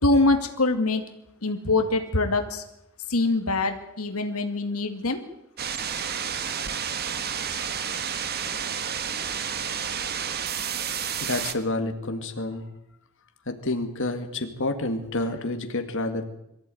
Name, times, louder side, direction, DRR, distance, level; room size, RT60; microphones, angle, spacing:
voice 1, 0.0-1.0 1.4-2.6 3.1-5.2, left 2 dB, 90° left, 6 dB, 2.2 m, -24 dB
sound 1, 5.6-11.5, right 7 dB, 45° right, 1.6 m, -30 dB
voice 2, 11.2-12.6 13.5-16.2, left 2 dB, 65° left, 6 dB, 2.2 m, -29 dB
23.5 x 15.0 x 9.3 m, 0.80 s
head